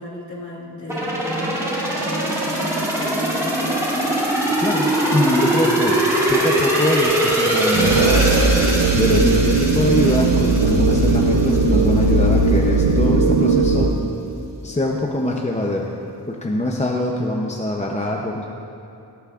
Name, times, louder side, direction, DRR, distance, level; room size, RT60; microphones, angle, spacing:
voice 1, 0.0-3.9, left 1 dB, 45° left, -5 dB, 2.5 m, -34 dB
sound 1, 0.9-11.6 12.0-12.1, right 1 dB, 5° right, 2.5 m, -22 dB
voice 2, 4.6-6.0 6.3-8.4 8.6-8.7 9.0-13.9 14.6-15.9 16.3-18.4, left 1 dB, 15° left, -1 dB, 0.6 m, -23 dB
sound 2, 7.7-13.9, right 3 dB, 75° right, 1.0 m, -17 dB
18.5 x 13.0 x 2.5 m, 2.7 s
wide cardioid pair, 145°, 41 cm